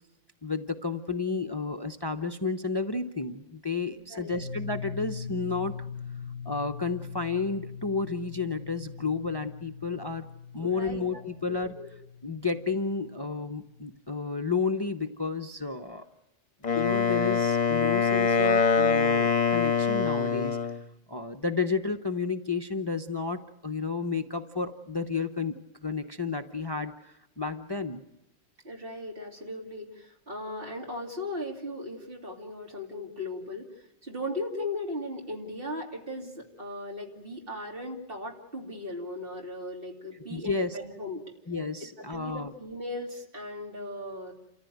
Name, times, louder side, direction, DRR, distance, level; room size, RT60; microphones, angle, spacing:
voice 1, 0.4-5.8 6.4-10.2 10.5-11.7 12.2-16.0 16.7-25.6 25.8-28.0 40.3-40.8 41.5-42.5, left 4 dB, 25° left, 8 dB, 0.8 m, -31 dB
sound 1, 4.3-13.9, left 6 dB, 85° right, 3.5 m, -41 dB
voice 2, 10.6-11.0 11.5-11.9 28.6-41.2 42.0-44.3, left 1 dB, 55° right, 1 dB, 3.1 m, -37 dB
Wind instrument woodwind instrument, 16.6-20.8, left 5 dB, 40° left, 1.1 m, -24 dB
29.0 x 14.5 x 9.3 m, 0.90 s
omnidirectional pair, 1.2 m